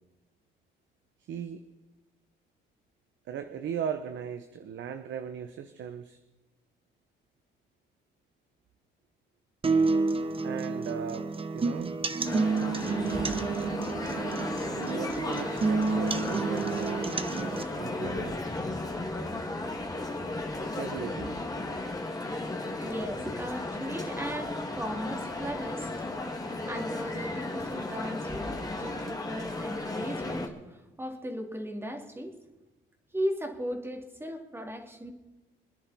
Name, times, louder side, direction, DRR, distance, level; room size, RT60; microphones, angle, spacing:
voice 1, 1.3-1.6 3.3-6.2 10.4-12.0 14.7-18.4 20.6-21.4, right 8 dB, 70° right, 8 dB, 1.0 m, -38 dB
sound 1, 9.6-17.6, right 4 dB, 25° right, 1.1 m, -29 dB
Male speech man speaking, 12.2-30.5, left 2 dB, 20° left, 2.3 m, -35 dB
voice 2, 22.7-25.9 26.3-32.4 33.1-35.1, equal, 10° right, 3 dB, 2.6 m, -37 dB
25.5 x 10.0 x 4.2 m, 1.0 s
cardioid pair, 90°, 20 cm